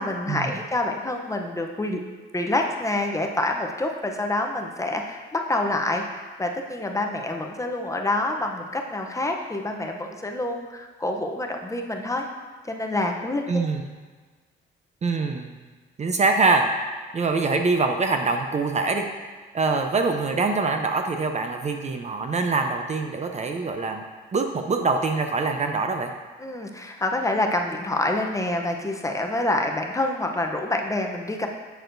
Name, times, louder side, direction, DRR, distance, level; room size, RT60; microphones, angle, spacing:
voice 1, 0.0-2.0 2.3-12.3 12.7-13.6 26.4-31.5, left 2 dB, 15° left, 2 dB, 0.7 m, -27 dB
voice 2, 13.5-13.8 15.0-15.5 16.0-16.6 17.1-19.0 19.5-24.0 24.3-26.1, right 3 dB, 35° right, 5 dB, 0.6 m, -24 dB
7.9 x 6.6 x 2.6 m, 1.4 s
cardioid pair, 90°, 20 cm